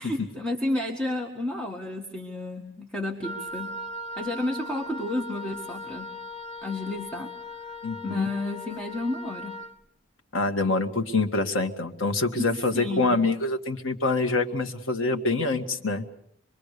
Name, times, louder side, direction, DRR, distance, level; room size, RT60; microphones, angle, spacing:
voice 1, 0.0-3.7 4.2-6.1 6.6-7.3 8.0-9.6 12.4-12.5 12.7-13.2, left 2 dB, 5° left, 0 dB, 1.8 m, -31 dB
Wind instrument woodwind instrument, 3.2-9.7, left 1 dB, 25° left, 1.1 m, -38 dB
voice 2, 7.8-8.3 10.3-16.1, left 3 dB, 90° left, 6 dB, 1.9 m, -25 dB
26.5 x 22.0 x 6.8 m, 0.69 s
head